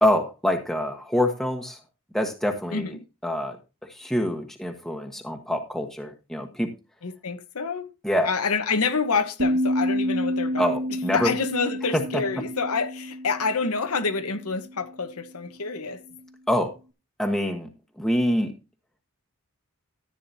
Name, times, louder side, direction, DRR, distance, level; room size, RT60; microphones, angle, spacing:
voice 1, 0.0-1.8 2.1-3.0 3.2-3.6 3.9-6.7 8.0-8.3 10.6-11.3 11.9-12.0 16.5-16.7 17.2-17.7 18.0-18.5, equal, ahead, 1.3 m, -25 dB
voice 2, 2.7-3.0 7.0-7.8 8.2-10.8 11.1-16.0, left 4 dB, 85° left, 1.2 m, -27 dB
sound 1, 9.4-14.5, equal, 80° right, 2.0 m, -29 dB
14.0 x 8.8 x 2.8 m
head